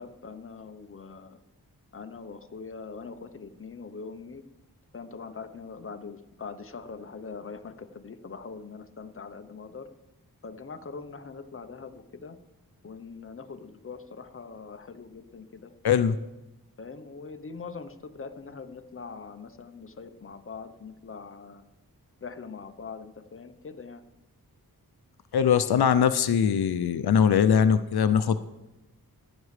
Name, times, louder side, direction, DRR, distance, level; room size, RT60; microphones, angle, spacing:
voice 1, 0.0-1.4 1.9-4.4 4.9-9.9 10.4-12.4 12.8-16.1 16.8-21.6 22.2-24.0, left 5 dB, 35° left, 9 dB, 0.8 m, -42 dB
voice 2, 15.8-16.2 25.3-28.4, left 7 dB, 90° left, 12 dB, 0.5 m, -21 dB
16.0 x 9.7 x 3.2 m, 0.97 s
wide cardioid pair, 90°, 37 cm